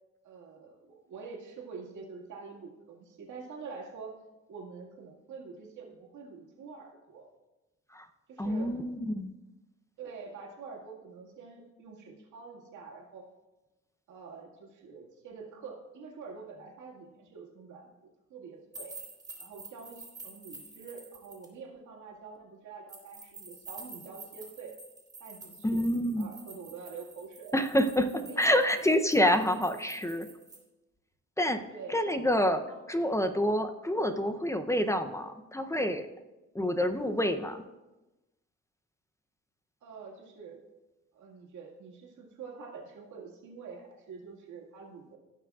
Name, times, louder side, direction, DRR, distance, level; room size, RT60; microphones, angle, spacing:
voice 1, 0.2-4.2 4.5-7.3 8.3-8.7 10.0-13.3 14.1-17.9 18.3-19.0 19.4-24.7 25.2-25.8 26.2-27.7 28.1-28.6 31.7-32.8 39.8-40.6 41.1-45.2, right 5 dB, 75° right, -2 dB, 2.1 m, -46 dB
voice 2, 8.4-9.3 25.6-26.3 27.5-30.3 31.4-31.6 31.9-32.6 32.9-36.1 36.5-37.6, equal, 10° left, 8 dB, 0.6 m, -27 dB
sound 1, 18.7-21.5 22.9-30.6, right 3 dB, 10° right, 2.9 m, -49 dB
16.5 x 6.0 x 2.4 m, 1.1 s
cardioid pair, 90°, 30 cm